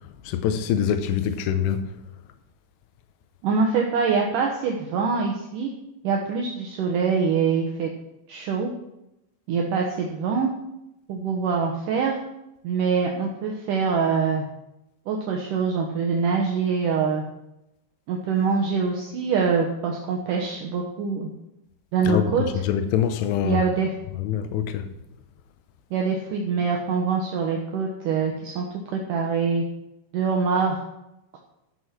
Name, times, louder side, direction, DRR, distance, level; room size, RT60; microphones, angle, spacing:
voice 1, 0.3-1.9 22.0-22.3 22.6-23.6 24.2-24.9, left 9 dB, 80° left, 2.8 m, -24 dB
voice 2, 3.4-5.7 6.0-7.9 8.3-8.7 9.5-10.5 11.1-12.2 12.6-14.5 15.1-17.2 18.1-21.3 21.9-22.6 23.4-24.0 25.9-29.6 30.1-30.8 31.3-31.4, right 5 dB, 75° right, 1.9 m, -24 dB
13.5 x 6.4 x 5.8 m
omnidirectional pair, 5.2 m